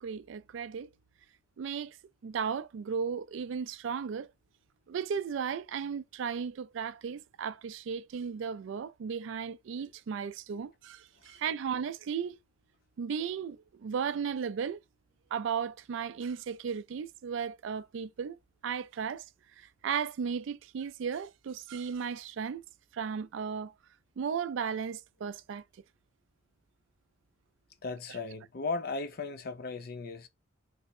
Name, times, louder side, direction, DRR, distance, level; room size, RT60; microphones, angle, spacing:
voice 1, 0.0-0.9 1.6-2.0 2.2-4.3 4.9-12.4 13.0-14.8 15.3-18.4 18.6-19.2 19.6-22.6 22.9-23.7 24.2-25.6, right 6 dB, 65° right, 0.3 m, -35 dB
voice 2, 27.8-30.3, left 3 dB, 50° left, 0.5 m, -36 dB
3.3 x 2.1 x 4.2 m
head